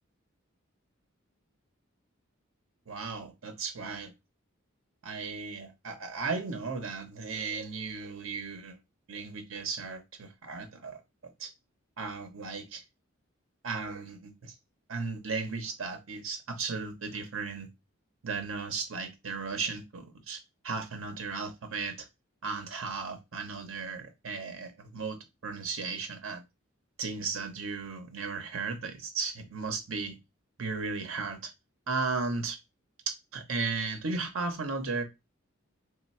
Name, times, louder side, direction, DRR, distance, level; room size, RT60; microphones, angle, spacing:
voice 1, 2.9-4.1 5.0-8.8 9.1-11.0 11.4-11.5 12.0-12.8 13.6-14.5 14.9-17.7 18.2-22.1 22.4-26.4 27.0-30.2 30.6-31.5 31.9-32.6 33.1-35.0, right 4 dB, 75° right, 0.8 m, -35 dB
3.1 x 2.0 x 4.2 m
head